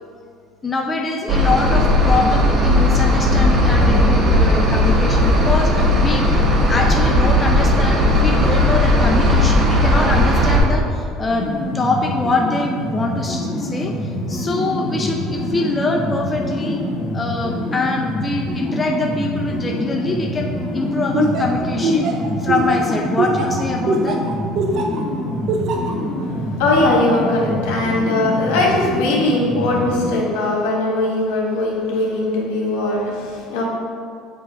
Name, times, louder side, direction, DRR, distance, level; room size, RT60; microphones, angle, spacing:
voice 1, 0.6-6.3 6.7-11.5 11.7-16.8 17.1-22.1 22.4-24.2, left 3 dB, 20° left, 1 dB, 0.6 m, -23 dB
sound 1, 1.3-10.6, left 1 dB, 40° right, 1.2 m, -16 dB
sound 2, 11.3-30.2, left 1 dB, 45° left, 1.0 m, -26 dB
Laughter, 21.1-25.0 25.5-25.9, right 2 dB, 55° right, 0.7 m, -21 dB
voice 2, 26.2-33.6, left 2 dB, 85° left, -3 dB, 1.5 m, -20 dB
6.9 x 3.1 x 4.8 m, 2.2 s
supercardioid pair, 100°, 0 cm